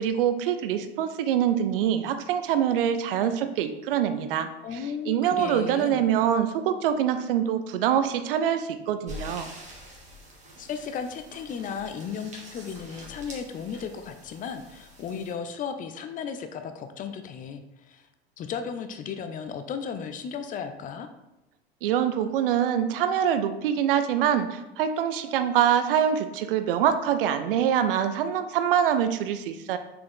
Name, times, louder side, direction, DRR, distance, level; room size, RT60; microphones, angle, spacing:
voice 1, 0.0-4.5 5.1-9.5 21.8-29.8, right 9 dB, 60° right, 10 dB, 0.6 m, -24 dB
voice 2, 4.6-6.0 10.6-18.1 18.4-21.1, left 6 dB, 25° left, 8 dB, 0.6 m, -35 dB
sound 1, 9.1-15.3, left 1 dB, 20° right, 1.8 m, -45 dB
6.2 x 4.6 x 3.6 m, 0.92 s
figure-of-eight pair, 75°, 32 cm